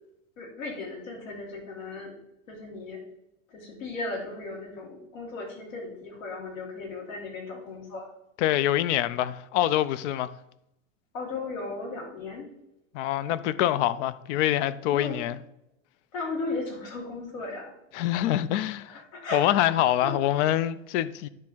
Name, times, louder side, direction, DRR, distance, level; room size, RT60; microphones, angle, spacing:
voice 1, 0.4-2.1 2.5-3.0 3.5-8.1 11.1-12.5 14.9-15.2 16.1-17.7 18.8-20.4, left 3 dB, 80° left, 3.1 m, -36 dB
voice 2, 8.4-10.3 12.9-15.4 17.9-19.0 19.3-21.3, left 12 dB, 60° left, 0.6 m, -25 dB
10.0 x 3.6 x 6.1 m
hypercardioid pair, 115°, 40 cm